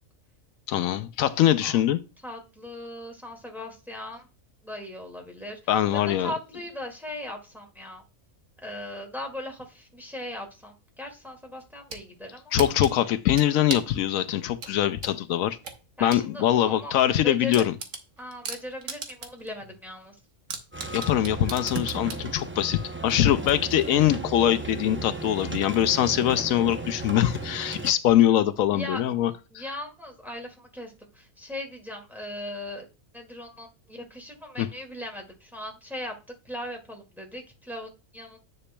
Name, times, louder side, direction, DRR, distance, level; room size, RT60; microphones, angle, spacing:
voice 1, 0.7-2.0 5.7-6.3 12.5-15.6 16.0-17.7 20.9-29.3 34.6-34.7, left 11 dB, 85° left, 1.0 m, -23 dB
voice 2, 2.2-4.3 4.6-5.6 5.9-8.0 8.6-12.4 16.0-17.7 18.2-20.2 28.7-29.2 29.5-32.9 33.1-36.1 36.4-38.4, left 1 dB, ahead, 1.9 m, -38 dB
sound 1, 11.6-12.0 12.6-14.0 14.6-16.3 16.6-16.7 17.1-17.2 17.5-19.5 19.8-19.9 20.5-22.2, right 5 dB, 75° right, 1.5 m, -36 dB
sound 2, 20.7-27.9, right 3 dB, 15° right, 0.4 m, -35 dB
9.8 x 6.9 x 2.2 m
omnidirectional pair, 1.4 m